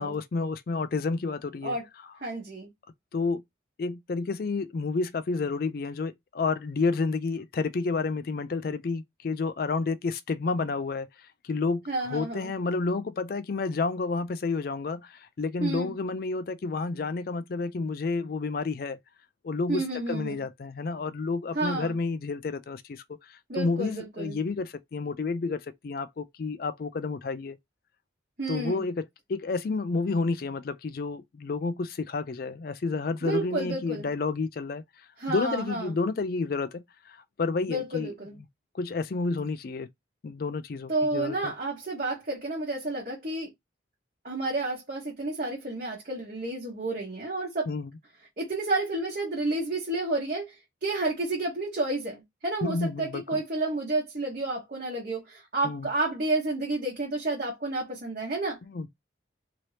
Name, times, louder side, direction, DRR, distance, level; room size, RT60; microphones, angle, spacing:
voice 1, 0.0-1.8 3.1-3.4 3.8-11.1 11.4-11.8 12.1-19.0 19.4-27.6 28.5-29.0 29.3-34.8 35.3-38.1 38.7-39.9 40.2-41.5 47.7-47.9 52.6-53.4 55.6-55.9 58.7-58.9, left 4 dB, 50° left, 0.4 m, -30 dB
voice 2, 2.2-2.7 11.9-12.5 15.6-15.9 19.7-20.4 21.5-22.0 23.5-24.4 28.4-28.8 33.2-34.1 35.2-35.9 37.7-38.4 40.9-43.5 44.2-47.7 48.4-58.6, right 2 dB, 45° right, 1.2 m, -30 dB
2.9 x 2.7 x 3.2 m
head